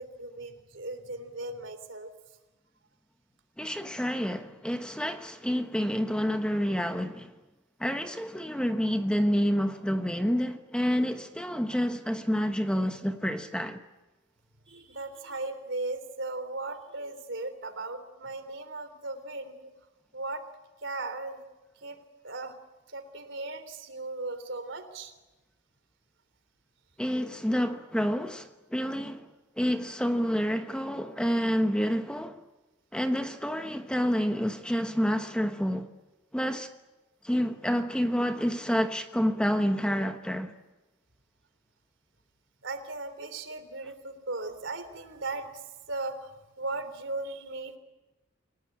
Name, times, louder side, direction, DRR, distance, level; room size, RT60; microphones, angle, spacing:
voice 1, 0.0-2.1 14.7-19.6 20.1-20.4 20.8-21.4 21.8-22.0 22.2-22.5 22.9-25.1 42.6-45.5 45.9-46.3 46.6-47.8, right 2 dB, 70° right, 3.4 m, -37 dB
voice 2, 3.6-7.3 7.8-13.8 27.0-29.3 29.6-32.4 32.9-35.9 36.3-36.7 37.2-40.5, equal, 5° left, 1.1 m, -28 dB
28.5 x 18.0 x 9.9 m
head